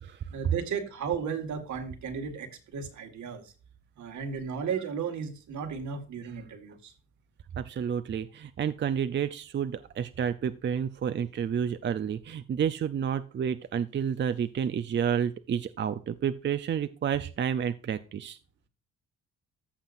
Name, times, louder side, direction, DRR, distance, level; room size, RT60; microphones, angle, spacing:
voice 1, 0.3-3.5 4.0-6.9, right 6 dB, 70° right, 6 dB, 1.9 m, -34 dB
voice 2, 7.6-18.4, right 8 dB, 40° right, 12 dB, 0.5 m, -30 dB
14.5 x 5.7 x 2.6 m, 0.35 s
cardioid pair, 90°, 30 cm